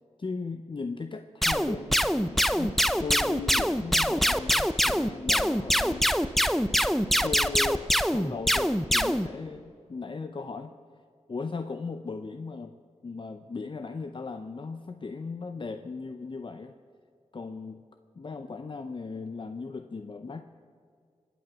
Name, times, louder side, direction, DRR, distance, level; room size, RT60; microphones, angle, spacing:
voice 1, 0.2-6.2 7.2-10.8 11.3-12.8 13.0-16.8 17.3-17.8 18.2-20.4, left 4 dB, 45° left, 8 dB, 0.7 m, -37 dB
sound 1, 1.4-9.3, equal, ahead, 0.6 m, -24 dB
25.0 x 9.1 x 6.1 m, 2.2 s
wide cardioid pair, 75°, 12 cm